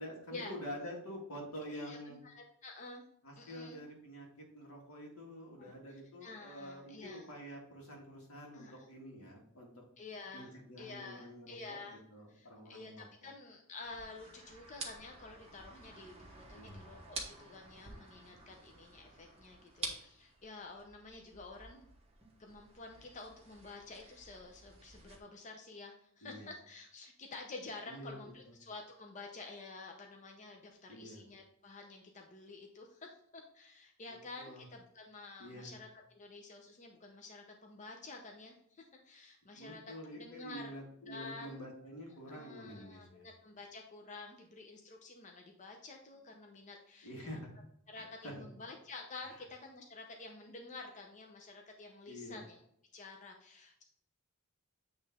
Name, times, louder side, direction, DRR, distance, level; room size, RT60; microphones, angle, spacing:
voice 1, 0.0-2.2 3.2-9.8 10.3-11.6 11.9-13.1 16.5-16.8 26.2-26.5 27.9-28.2 30.9-31.2 34.1-34.7 35.4-35.7 39.5-43.3 47.0-47.5 47.9-48.5 52.1-52.4, equal, 85° left, -1 dB, 1.9 m, -47 dB
voice 2, 1.7-3.0 3.4-3.8 5.6-7.3 8.5-8.9 10.0-12.0 12.3-21.9 22.4-40.7 41.1-41.6 42.1-47.4 47.9-52.6 52.9-53.8, left 3 dB, 35° left, 2 dB, 0.6 m, -50 dB
sound 1, 13.8-25.2, right 3 dB, 30° right, 1.1 m, -50 dB
8.4 x 3.2 x 3.5 m, 0.70 s
head